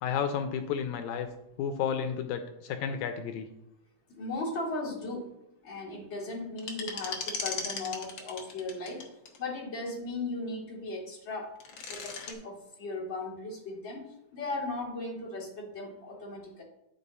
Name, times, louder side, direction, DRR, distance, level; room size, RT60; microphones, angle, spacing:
voice 1, 0.0-1.3 1.6-3.5, left 7 dB, 80° left, 7 dB, 1.9 m, -32 dB
voice 2, 4.2-5.3 5.6-9.0 9.4-11.5 11.9-16.6, left 2 dB, 25° left, -5 dB, 2.2 m, -37 dB
sound 1, 6.6-9.4 11.4-12.3, left 5 dB, 60° left, 1.3 m, -37 dB
9.9 x 5.2 x 4.1 m, 0.85 s
omnidirectional pair, 3.4 m